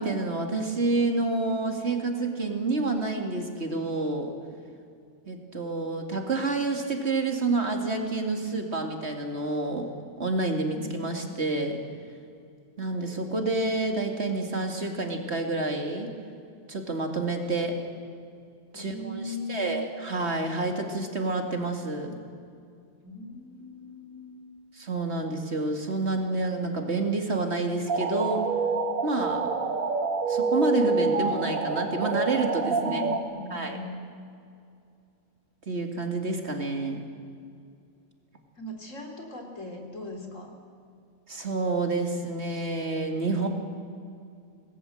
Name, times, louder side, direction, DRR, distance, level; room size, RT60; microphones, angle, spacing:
voice 1, 0.0-4.3 5.3-9.9 10.2-11.8 12.8-16.1 16.7-17.8 18.7-22.1 24.7-28.4 29.0-29.5 30.3-33.0 33.5-33.8 35.7-37.1 41.3-43.5, right 2 dB, 50° right, 4 dB, 2.7 m, -28 dB
voice 2, 10.7-11.3 18.7-19.9 23.0-24.4 32.8-33.9 38.6-40.5, left 1 dB, 70° left, 3 dB, 3.6 m, -39 dB
sound 1, 27.9-33.2, right 4 dB, 90° right, 2.0 m, -27 dB
26.5 x 19.0 x 7.9 m, 2.4 s
omnidirectional pair, 1.4 m